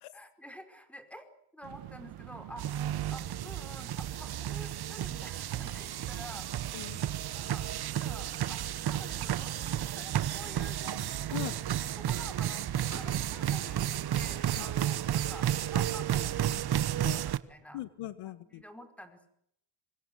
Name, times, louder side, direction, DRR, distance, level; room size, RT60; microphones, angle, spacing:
voice 1, 0.1-1.3 1.5-2.7 3.1-6.5 7.3-7.7 8.0-11.5 12.0-17.8 18.5-19.3, equal, 5° left, 8 dB, 4.8 m, -49 dB
sound 1, 1.6-17.3, right 13 dB, 80° right, 2.3 m, -48 dB
sound 2, 2.6-17.4, right 11 dB, 50° right, 1.3 m, -32 dB
sound 3, 4.1-16.4, right 6 dB, 35° right, 4.9 m, -56 dB
voice 2, 17.7-18.6, left 13 dB, 90° left, 13 dB, 1.9 m, -40 dB
26.0 x 25.0 x 7.9 m, 0.73 s
cardioid pair, 135°, 50 cm